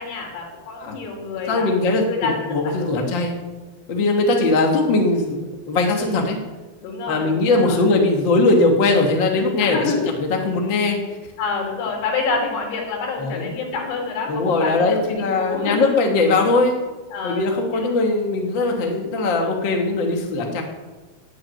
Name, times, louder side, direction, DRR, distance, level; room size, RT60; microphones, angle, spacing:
voice 1, 0.0-1.7 2.1-3.1 5.9-6.3 6.8-7.8 9.6-10.0 10.6-10.7 11.4-16.0 17.1-17.9 20.0-20.3, left 4 dB, 80° left, 1 dB, 6.3 m, -28 dB
voice 2, 1.5-3.4 3.9-5.4 5.7-6.4 7.1-11.0 13.2-13.5 14.3-16.8 17.2-20.6, left 3 dB, 40° left, 1 dB, 1.8 m, -20 dB
18.5 x 7.1 x 9.5 m, 1.2 s
omnidirectional pair, 5.9 m